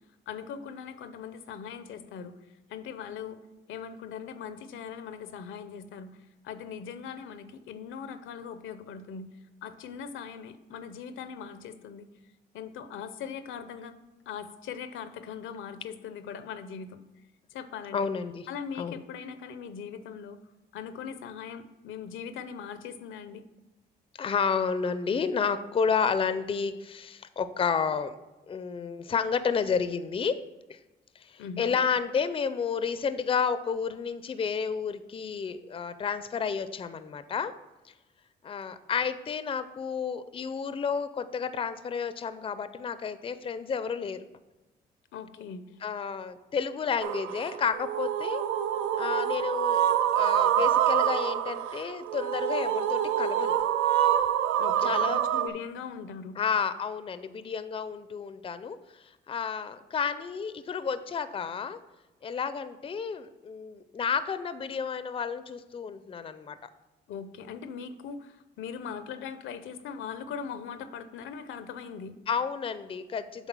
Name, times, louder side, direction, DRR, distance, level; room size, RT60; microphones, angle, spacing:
voice 1, 0.3-2.4 2.7-3.4 3.7-6.2 6.4-9.3 9.6-12.1 12.5-14.0 14.3-17.0 17.5-18.1 18.5-20.4 20.7-23.4 31.4-31.8 45.1-45.6 54.6-56.4 67.1-72.1, left 7 dB, 80° left, 12 dB, 0.6 m, -40 dB
voice 2, 17.9-18.5 18.8-19.0 24.2-28.1 28.5-30.4 30.7-30.8 31.2-37.5 38.4-44.2 45.8-48.5 49.0-49.8 50.1-53.5 54.8-55.2 56.4-61.8 62.2-66.6 72.3-73.5, left 6 dB, 30° left, 13 dB, 0.4 m, -31 dB
sound 1, 47.0-55.5, right 10 dB, 85° right, 0.4 m, -26 dB
8.1 x 3.6 x 6.1 m, 1.1 s
cardioid pair, 90°, 20 cm